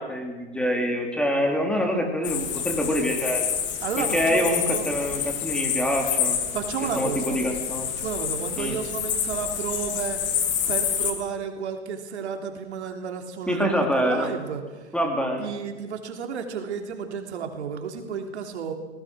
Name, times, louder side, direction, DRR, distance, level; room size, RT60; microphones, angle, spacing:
voice 1, 0.0-3.4 4.0-6.4 7.0-7.9 8.6-8.8 13.5-14.3 14.9-15.5, equal, 5° left, 2 dB, 3.6 m, -25 dB
sound 1, 2.2-11.1, left 8 dB, 35° left, 3.1 m, -28 dB
voice 2, 3.8-4.9 6.5-7.4 8.0-10.2 10.7-14.8 15.4-18.7, right 7 dB, 75° right, 5 dB, 3.3 m, -32 dB
22.0 x 19.0 x 6.3 m, 1.3 s
hypercardioid pair, 120°, 34 cm